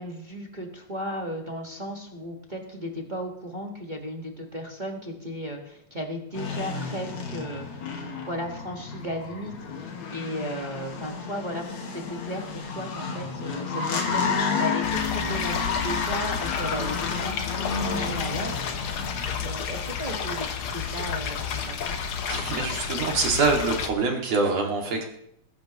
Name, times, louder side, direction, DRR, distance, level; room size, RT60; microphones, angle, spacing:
voice 1, 0.0-7.9 8.3-9.5 9.8-14.3 14.6-18.7 19.3-20.5 20.7-22.0, equal, 25° right, 1 dB, 1.0 m, -35 dB
sound 1, 6.3-19.5, left 5 dB, 75° left, 3.1 m, -31 dB
sound 2, 14.8-23.9, left 7 dB, 60° left, 1.6 m, -31 dB
voice 2, 20.0-20.5 22.3-25.0, right 4 dB, 65° right, 1 dB, 3.5 m, -25 dB
21.0 x 11.5 x 3.1 m, 0.73 s
omnidirectional pair, 3.3 m